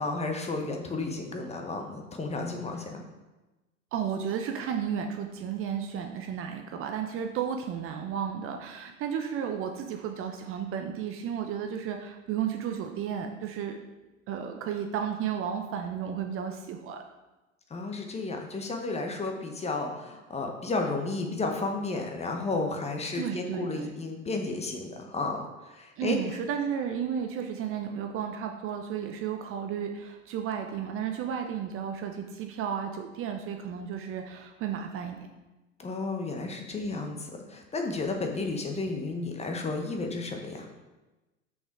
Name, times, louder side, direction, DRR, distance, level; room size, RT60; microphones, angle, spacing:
voice 1, 0.0-3.0 17.7-26.2 35.8-40.7, left 3 dB, 15° left, 3 dB, 1.1 m, -32 dB
voice 2, 3.9-13.8 14.3-17.0 23.1-23.9 26.0-35.3, right 8 dB, 30° right, 4 dB, 0.7 m, -33 dB
6.5 x 5.9 x 4.7 m, 1.1 s
figure-of-eight pair, 90°, 41 cm